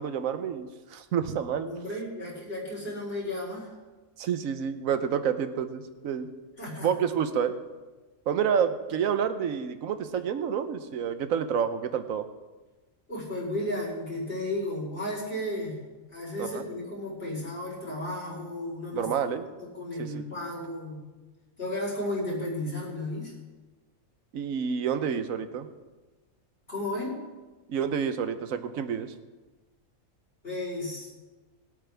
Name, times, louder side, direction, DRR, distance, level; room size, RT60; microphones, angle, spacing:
voice 1, 0.0-1.7 4.2-6.3 6.8-7.5 8.3-12.3 16.4-16.7 18.9-19.4 20.0-20.2 24.3-25.7 27.7-29.1, right 7 dB, 70° right, 10 dB, 1.3 m, -29 dB
voice 2, 1.6-3.7 6.6-7.1 13.1-15.8 16.1-19.1 19.6-21.0 21.6-23.3 26.7-27.2 30.4-31.1, left 1 dB, 40° left, -5 dB, 4.7 m, -34 dB
22.0 x 8.7 x 3.5 m, 1.2 s
omnidirectional pair, 1.5 m